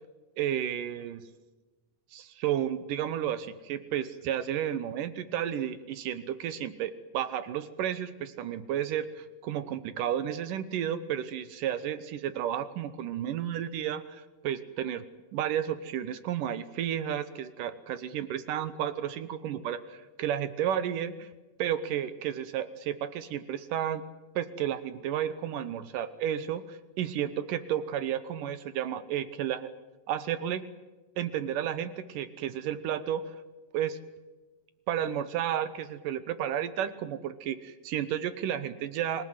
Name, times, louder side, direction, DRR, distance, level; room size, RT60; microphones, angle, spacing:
voice 1, 0.4-1.2 2.1-15.0 15.3-21.3 21.6-24.0 24.4-29.7 30.1-30.6 31.2-33.4 33.7-34.0 34.9-39.3, right 10 dB, 75° right, 13 dB, 2.5 m, -32 dB
26.5 x 18.0 x 9.5 m, 1.2 s
omnidirectional pair, 3.9 m